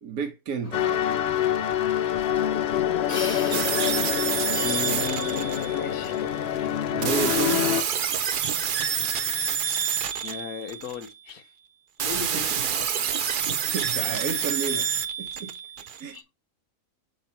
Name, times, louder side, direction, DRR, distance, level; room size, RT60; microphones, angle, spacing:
voice 1, 0.0-1.2 6.9-7.7 12.1-12.6 13.4-14.9 15.2-15.5 16.0-16.2, right 5 dB, 90° right, 1.5 m, -32 dB
sound 1, 0.6-7.4, left 2 dB, 25° left, 1.6 m, -40 dB
sound 2, 0.7-7.8, left 10 dB, 65° left, 0.6 m, -26 dB
sound 3, 3.5-6.2 7.0-11.1 12.0-16.2, right 8 dB, 55° right, 0.6 m, -28 dB
voice 2, 4.6-6.2 10.2-11.5 12.0-12.9 16.1-16.2, left 6 dB, 80° left, 1.3 m, -35 dB
7.8 x 3.0 x 4.4 m
omnidirectional pair, 1.5 m